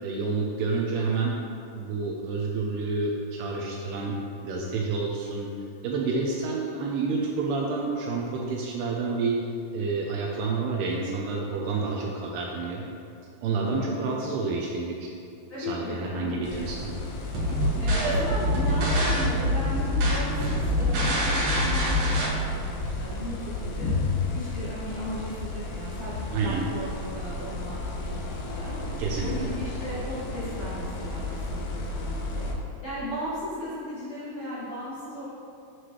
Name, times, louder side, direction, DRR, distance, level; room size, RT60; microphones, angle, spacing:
voice 1, 0.0-1.3 1.8-4.2 4.4-5.5 5.8-9.4 9.7-12.8 13.4-15.1 15.6-16.9 17.6-17.8 26.3-26.6 29.0-29.5, right 4 dB, 80° right, -2 dB, 2.5 m, -29 dB
voice 2, 13.6-14.0 15.5-16.7 17.8-23.3 23.6-23.9 24.3-28.8 29.2-32.5 32.8-35.3, equal, 55° left, -12 dB, 1.6 m, -36 dB
sound 1, 16.4-32.5, left 3 dB, 80° left, 3.0 m, -33 dB
sound 2, 17.3-22.3, equal, 65° right, 2.6 m, -25 dB
8.2 x 7.7 x 3.1 m, 2.5 s
omnidirectional pair, 5.2 m